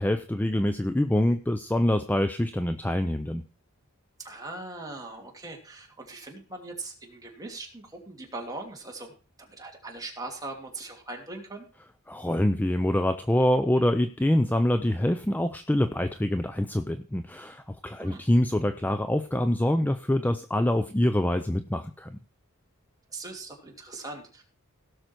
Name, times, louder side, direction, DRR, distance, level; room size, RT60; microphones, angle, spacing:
voice 1, 0.0-3.4 12.1-22.1, left 1 dB, 10° left, 9 dB, 0.5 m, -25 dB
voice 2, 4.2-9.1 9.4-11.7 18.0-18.2 23.1-24.4, right 2 dB, 15° right, 0 dB, 2.8 m, -40 dB
17.0 x 6.5 x 4.5 m, 0.36 s
head